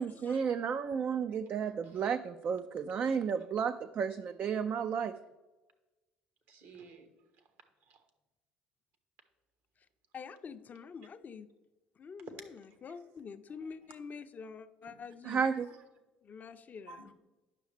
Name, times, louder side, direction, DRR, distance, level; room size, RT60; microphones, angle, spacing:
voice 1, 0.0-5.1 15.3-15.7, right 6 dB, 45° right, 9 dB, 0.4 m, -32 dB
voice 2, 6.5-7.1 7.9-8.0 14.9-15.0 15.5-15.8 16.9-17.1, right 3 dB, 65° right, 7 dB, 1.2 m, -53 dB
voice 3, 10.1-11.5 12.0-15.4 16.2-17.1, left 5 dB, 40° left, 9 dB, 0.5 m, -47 dB
9.2 x 6.2 x 3.3 m, 1.1 s
hypercardioid pair, 60°, 4 cm